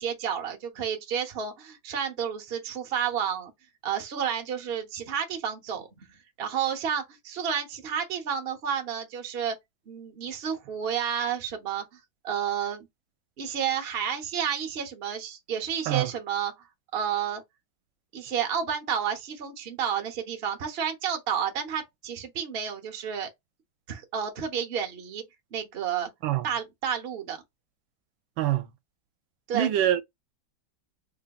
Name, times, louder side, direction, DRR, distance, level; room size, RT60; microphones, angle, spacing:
voice 1, 0.0-3.5 3.8-9.5 9.9-11.8 12.2-12.9 13.4-16.5 16.9-17.4 18.1-23.3 23.9-25.2 25.5-26.1 26.4-27.4 29.5-29.7, right 8 dB, 45° right, 0.9 m, -31 dB
voice 2, 29.5-30.0, right 12 dB, 80° right, 1.3 m, -24 dB
3.9 x 3.3 x 2.2 m
omnidirectional pair, 2.1 m